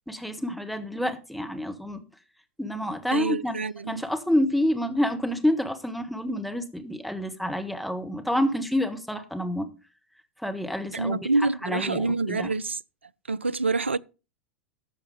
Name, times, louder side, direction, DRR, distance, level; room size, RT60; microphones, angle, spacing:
voice 1, 0.1-2.0 2.6-3.6 3.9-9.7 10.4-11.3 11.6-12.5, left 1 dB, ahead, 1.5 m, -28 dB
voice 2, 3.1-4.0 10.9-12.8 13.3-14.0, right 3 dB, 85° right, 0.4 m, -26 dB
13.5 x 5.6 x 5.0 m
figure-of-eight pair, 90°, 6 cm